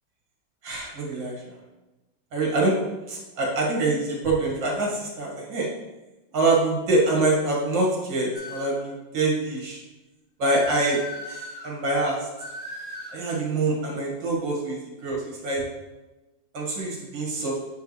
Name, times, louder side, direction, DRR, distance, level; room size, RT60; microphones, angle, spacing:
voice 1, 0.6-1.4 2.3-2.7 3.1-5.7 6.3-9.8 10.4-12.3 13.1-15.6 16.5-17.5, right 2 dB, 70° right, -3 dB, 2.4 m, -25 dB
sound 1, 8.3-8.8 10.4-11.7 12.4-13.2, left 1 dB, 20° left, 2.5 m, -38 dB
8.3 x 4.6 x 3.2 m, 1.1 s
omnidirectional pair, 2.1 m